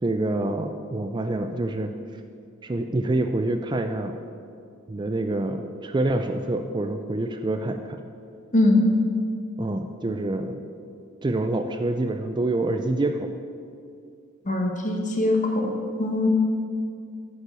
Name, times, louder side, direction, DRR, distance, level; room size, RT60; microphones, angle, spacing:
voice 1, 0.0-1.9 2.6-4.1 4.9-8.0 9.6-10.6 11.2-13.3, right 2 dB, 20° right, 6 dB, 0.4 m, -26 dB
voice 2, 8.5-8.9 14.4-15.7 16.0-16.3, left 2 dB, 35° left, 2 dB, 1.4 m, -21 dB
9.5 x 6.7 x 6.9 m, 2.4 s
head